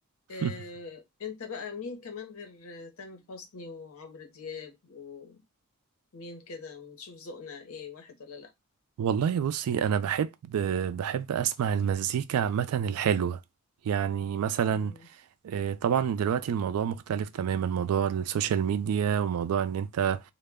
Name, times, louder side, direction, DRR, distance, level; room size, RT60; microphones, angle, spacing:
voice 1, 0.3-5.4 6.1-8.5 14.7-15.1, left 5 dB, 70° left, 0.7 m, -42 dB
voice 2, 9.0-13.4 13.8-14.9 15.4-20.2, right 8 dB, 85° right, 0.3 m, -28 dB
2.1 x 2.0 x 3.3 m
head